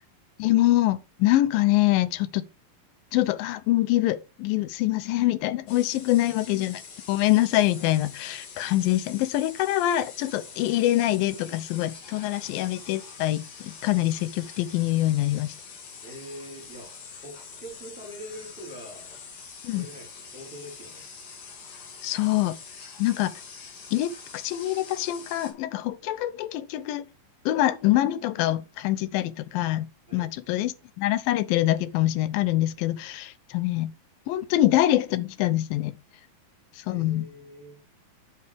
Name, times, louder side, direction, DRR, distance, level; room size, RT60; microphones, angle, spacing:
voice 1, 0.4-2.4 3.1-6.8 7.1-15.6 19.6-19.9 22.0-22.6 23.0-23.3 23.9-27.1 27.5-29.9 30.1-33.9 34.3-35.9 36.9-37.2, left 15 dB, 80° left, 2.2 m, -25 dB
sound 1, 5.7-25.5, left 5 dB, 65° left, 3.3 m, -45 dB
voice 2, 16.0-16.9 17.2-19.1 19.7-21.1 30.1-30.3 36.9-37.8, equal, ahead, 3.5 m, -43 dB
8.0 x 5.7 x 3.4 m
omnidirectional pair, 4.2 m